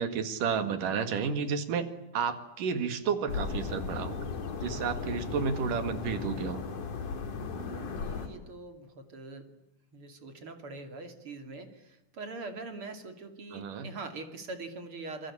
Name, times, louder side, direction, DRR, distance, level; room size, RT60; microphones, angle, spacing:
voice 1, 0.0-1.9 2.1-4.2 4.6-6.6 13.5-13.9, right 6 dB, 90° right, 9 dB, 3.6 m, -31 dB
sound 1, 3.3-8.3, left 5 dB, 70° left, 5.1 m, -36 dB
voice 2, 7.4-9.5 9.9-15.3, right 3 dB, 45° right, 7 dB, 3.3 m, -43 dB
28.0 x 22.0 x 8.6 m, 0.90 s
omnidirectional pair, 3.6 m